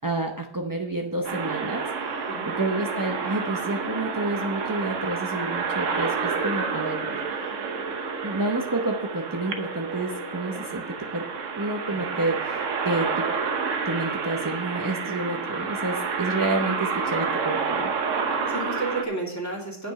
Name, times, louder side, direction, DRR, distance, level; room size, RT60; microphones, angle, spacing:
voice 1, 0.0-1.8 2.6-7.2 8.2-10.8 11.1-11.2 11.5-13.1 13.9-17.9, right 2 dB, 35° right, 2 dB, 0.3 m, -29 dB
sound 1, 1.2-19.0, right 5 dB, 55° right, 1.2 m, -29 dB
voice 2, 18.3-19.9, right 2 dB, 10° left, -3 dB, 2.6 m, -32 dB
9.2 x 5.2 x 7.5 m, 0.71 s
omnidirectional pair, 1.8 m